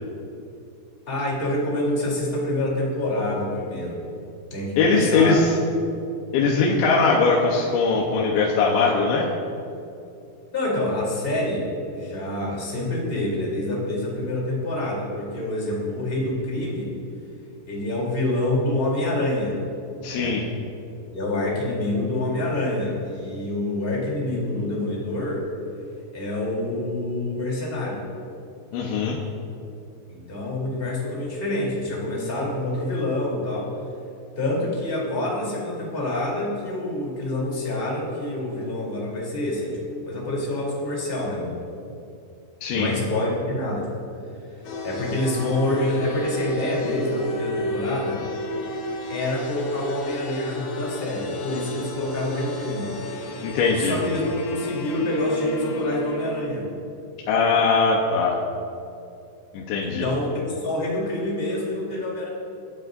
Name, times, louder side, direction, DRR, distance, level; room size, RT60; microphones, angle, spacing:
voice 1, 1.1-4.0 4.5-5.4 10.5-16.9 17.6-19.6 20.1-20.4 21.1-25.5 26.1-28.0 30.1-33.7 34.3-41.7 42.7-44.0 44.8-48.2 49.1-52.9 53.8-56.6 59.8-62.3, left 1 dB, 15° left, -4 dB, 3.1 m, -27 dB
voice 2, 4.8-5.5 6.3-9.3 20.0-20.4 28.7-29.2 42.6-42.9 53.4-54.0 57.3-58.4 59.5-60.1, left 4 dB, 90° left, -2 dB, 3.4 m, -20 dB
sound 1, 44.6-56.4, left 1 dB, 70° left, 2.8 m, -32 dB
23.5 x 12.0 x 2.7 m, 2.7 s
omnidirectional pair, 5.0 m